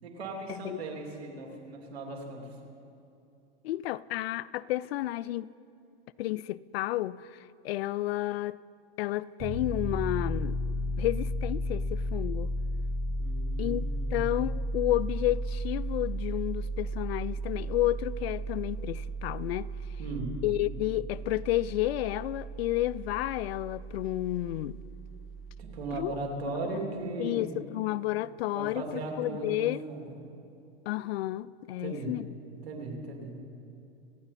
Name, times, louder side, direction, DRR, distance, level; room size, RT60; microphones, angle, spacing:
voice 1, 0.0-2.4 13.2-14.3 20.0-20.3 25.6-27.4 28.5-30.0 31.8-32.1 32.6-33.3, right 3 dB, 90° right, 3.0 m, -37 dB
voice 2, 3.6-5.5 6.2-8.6 9.0-10.6 11.0-12.6 13.6-13.8 14.1-19.7 20.4-24.8 25.9-26.2 27.2-28.8 29.2-29.8 30.9-32.3, left 16 dB, 75° left, 0.5 m, -31 dB
Piano, 9.4-26.1, right 1 dB, 30° right, 4.6 m, -34 dB
26.5 x 9.7 x 4.2 m
supercardioid pair, 120°, 30 cm